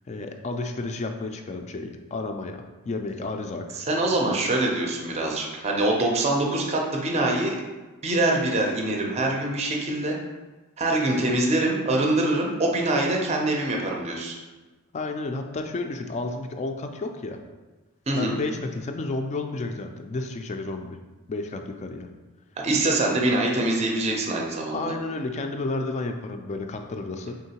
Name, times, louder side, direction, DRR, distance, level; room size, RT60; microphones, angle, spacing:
voice 1, 0.1-3.8 14.9-17.4 18.1-21.0 21.3-22.1 24.7-27.4, left 3 dB, 30° left, 5 dB, 0.3 m, -31 dB
voice 2, 3.7-7.6 8.0-10.2 10.8-14.4 18.1-18.4 22.6-24.9, right 2 dB, 30° right, 0 dB, 0.5 m, -24 dB
3.8 x 3.6 x 2.8 m, 1.2 s
head